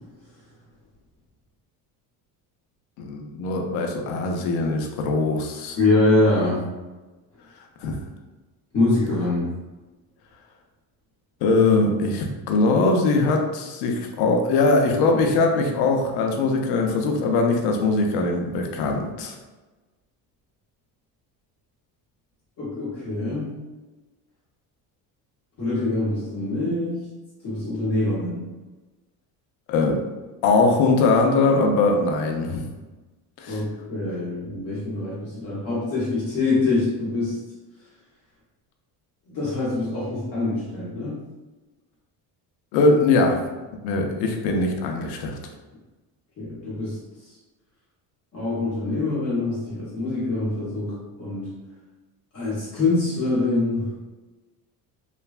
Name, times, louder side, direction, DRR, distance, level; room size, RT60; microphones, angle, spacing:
voice 1, 3.0-5.8 7.8-8.0 11.4-19.3 29.7-30.0 30.4-32.7 33.4-33.6 42.7-43.4 43.8-45.4, left 3 dB, 75° left, 2 dB, 0.6 m, -21 dB
voice 2, 5.8-6.6 8.7-9.4 22.6-23.6 25.6-27.0 27.4-28.5 33.5-37.4 39.3-41.2 46.4-47.0 48.3-51.5 52.3-53.9, left 2 dB, 35° left, -8 dB, 0.9 m, -24 dB
3.2 x 2.2 x 2.4 m, 1.2 s
cardioid pair, 170°, 39 cm